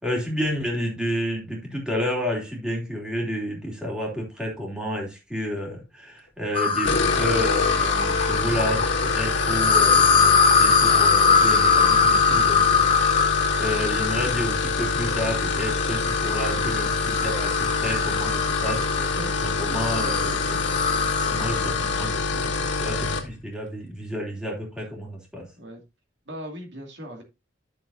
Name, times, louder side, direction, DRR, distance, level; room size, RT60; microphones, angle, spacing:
voice 1, 0.0-13.3 13.6-19.2 19.4-20.4 21.3-22.1 22.8-25.5, equal, 5° right, 2.9 m, -30 dB
sound 1, 6.5-22.2, left 5 dB, 25° left, 1.0 m, -23 dB
sound 2, 6.7-23.3, left 4 dB, 65° left, 2.2 m, -26 dB
voice 2, 18.7-20.4 25.6-25.8 26.3-27.2, equal, 60° right, 2.3 m, -41 dB
11.5 x 6.7 x 2.6 m
head